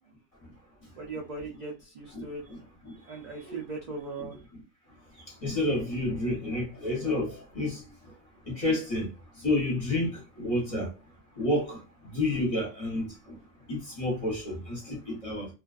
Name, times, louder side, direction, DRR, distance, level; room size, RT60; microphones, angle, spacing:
voice 1, 1.0-2.4 3.1-4.4, right 3 dB, 55° right, 0.4 m, -38 dB
voice 2, 2.1-2.6 2.8-3.0 3.4-3.6 5.4-7.8 8.5-9.1 9.4-10.9 11.4-11.8 12.1-13.4 13.7-15.5, left 1 dB, 30° left, 0.8 m, -30 dB
2.4 x 2.3 x 2.4 m
omnidirectional pair, 1.4 m